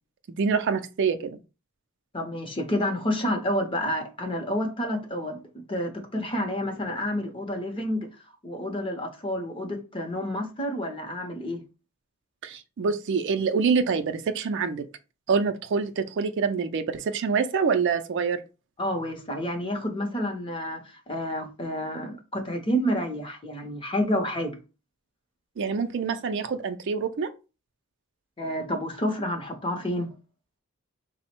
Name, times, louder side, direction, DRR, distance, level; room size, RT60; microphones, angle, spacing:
voice 1, 0.3-1.4 12.4-14.8 15.3-18.4 25.6-27.3, right 5 dB, 55° right, 0.4 m, -26 dB
voice 2, 2.1-8.1 8.4-11.6 18.8-24.6 28.4-30.1, equal, 25° left, 0.6 m, -29 dB
3.5 x 2.0 x 4.3 m
head